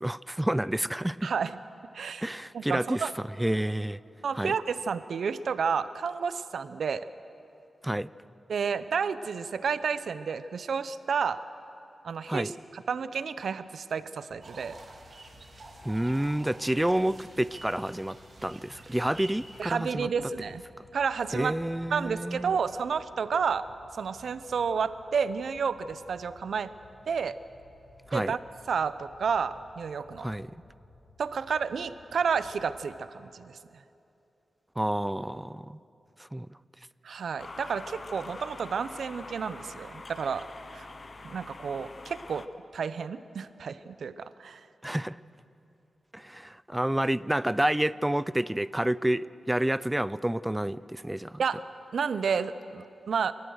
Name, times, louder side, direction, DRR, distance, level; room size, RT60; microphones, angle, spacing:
voice 1, 0.0-1.3 2.2-3.1 3.4-4.0 4.3-4.5 7.8-8.1 12.3-12.5 15.8-18.2 18.4-20.1 21.3-22.5 28.1-28.3 30.2-30.5 34.8-35.8 36.3-36.5 44.8-45.2 46.1-51.4, right 1 dB, 10° right, 18 dB, 0.4 m, -29 dB
voice 2, 1.2-1.6 1.9-3.1 4.2-7.1 8.5-11.4 12.0-14.8 19.6-20.6 20.9-21.6 21.9-23.7 23.9-26.7 27.1-27.4 28.1-28.4 28.7-30.3 31.2-33.6 37.0-40.5 40.7-40.9 41.2-42.5 42.7-44.6 51.4-51.6 51.9-53.3, right 6 dB, 80° right, 14 dB, 0.6 m, -31 dB
sound 1, 14.3-32.8, left 2 dB, 70° left, 2.1 m, -57 dB
sound 2, 14.4-19.6, right 2 dB, 55° right, 2.6 m, -49 dB
sound 3, 37.4-42.5, left 3 dB, 45° left, 0.9 m, -45 dB
29.0 x 14.0 x 6.4 m, 2.8 s
cardioid pair, 65°, 0 cm